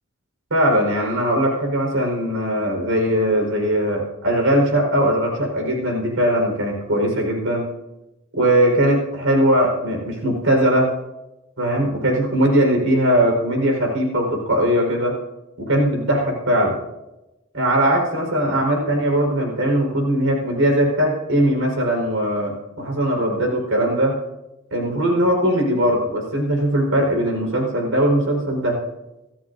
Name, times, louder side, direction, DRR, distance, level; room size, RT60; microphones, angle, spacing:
voice 1, 0.5-7.7 8.3-10.9 11.6-15.2 15.6-16.8 17.5-24.1 24.7-28.8, right 1 dB, 80° right, 1 dB, 4.8 m, -20 dB
25.0 x 14.0 x 2.7 m, 0.98 s
head